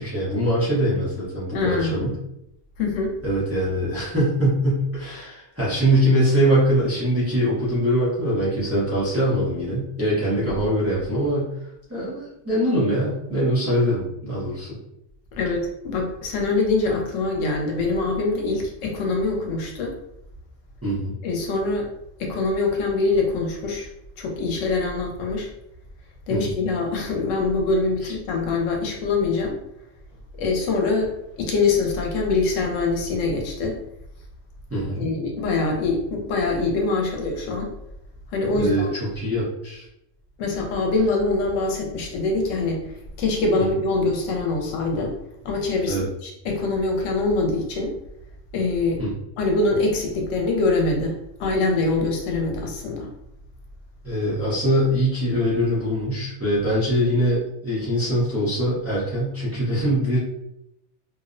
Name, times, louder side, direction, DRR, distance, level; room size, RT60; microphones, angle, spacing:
voice 1, 0.0-2.2 3.2-11.5 11.9-14.8 20.8-21.1 26.3-26.6 28.0-28.1 34.7-35.1 38.5-38.8 39.1-39.9 43.6-43.7 45.9-46.1 49.0-49.1 54.0-60.2, equal, 15° right, -8 dB, 0.5 m, -23 dB
voice 2, 1.5-2.1 2.8-3.1 10.4-10.5 15.4-19.9 21.2-21.9 22.2-23.9 24.2-25.5 26.3-29.6 30.4-31.1 31.4-33.8 35.0-37.7 38.3-38.9 40.4-42.8 43.2-45.2 45.4-47.9 48.5-49.0 49.4-53.1, left 3 dB, 80° left, 1 dB, 0.9 m, -24 dB
2.6 x 2.0 x 2.5 m, 0.81 s
omnidirectional pair, 1.3 m